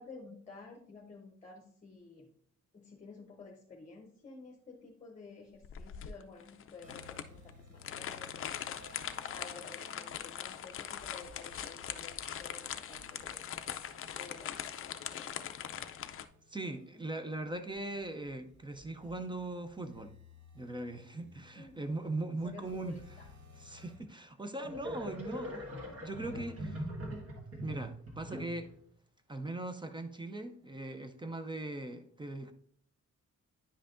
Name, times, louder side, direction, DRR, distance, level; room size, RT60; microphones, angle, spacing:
voice 1, 0.0-2.3 2.7-13.4 14.1-15.9 21.6-23.3, left 4 dB, 25° left, 0.8 m, -52 dB
sound 1, 5.6-16.2, left 9 dB, 45° left, 0.4 m, -41 dB
sound 2, 6.8-24.0, left 2 dB, 75° right, 1.2 m, -58 dB
voice 2, 16.5-20.1 20.5-23.0 23.6-25.7 26.0-26.9 27.6-28.7 29.3-32.5, right 2 dB, 15° right, 0.4 m, -40 dB
sound 3, 23.9-24.0 24.6-28.8, equal, 50° right, 1.5 m, -42 dB
9.8 x 5.5 x 2.5 m
wide cardioid pair, 165°, 30 cm